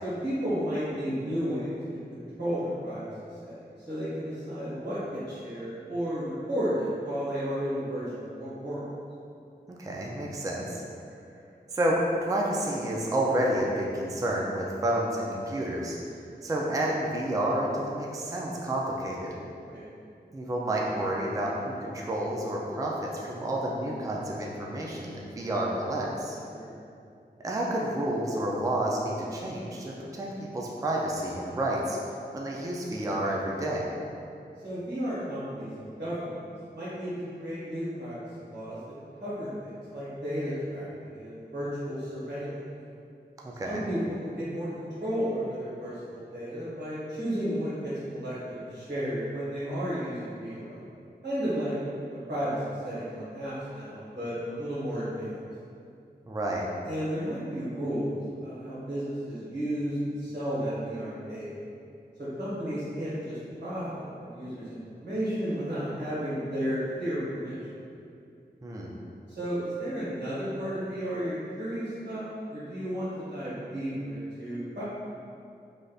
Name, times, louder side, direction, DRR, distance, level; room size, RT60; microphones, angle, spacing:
voice 1, 0.0-1.7 2.1-3.0 3.4-8.9 19.6-19.9 26.4-26.8 34.6-38.9 39.2-42.6 43.6-50.8 51.2-51.8 52.3-55.3 56.8-61.5 62.2-67.6 69.4-74.8, equal, 85° right, -11 dB, 1.3 m, -33 dB
voice 2, 9.8-10.8 11.7-16.0 16.4-19.3 20.3-26.4 27.4-30.3 30.5-32.0 32.3-33.9 43.4-43.8 56.3-56.7 68.6-68.9, right 1 dB, 20° right, -2 dB, 0.3 m, -30 dB
3.3 x 2.6 x 2.3 m, 2.5 s
wide cardioid pair, 60°, 18 cm